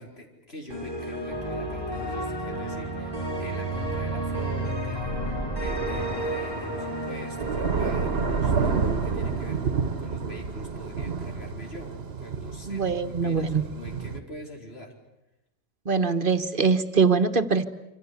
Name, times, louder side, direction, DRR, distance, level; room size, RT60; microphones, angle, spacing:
voice 1, 0.0-14.9, equal, 80° left, 1 dB, 5.0 m, -43 dB
sound 1, 0.7-10.8, right 1 dB, 20° left, 6.0 m, -32 dB
Thunder / Rain, 5.9-14.2, right 5 dB, 75° right, 1.5 m, -30 dB
voice 2, 12.7-13.6 15.8-17.7, right 5 dB, 55° right, 9 dB, 1.5 m, -23 dB
27.0 x 26.0 x 8.4 m, 0.89 s
omnidirectional pair, 1.0 m